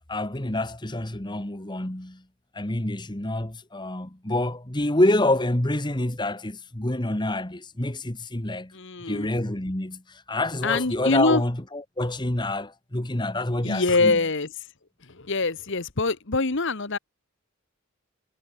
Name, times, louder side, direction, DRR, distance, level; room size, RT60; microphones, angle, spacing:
voice 1, 0.0-2.2 2.5-8.7 9.1-14.1, left 1 dB, 20° left, 1.5 m, -27 dB
voice 2, 8.7-9.3 10.6-11.4 13.6-14.5 15.0-17.0, left 3 dB, 55° left, 1.4 m, -24 dB
head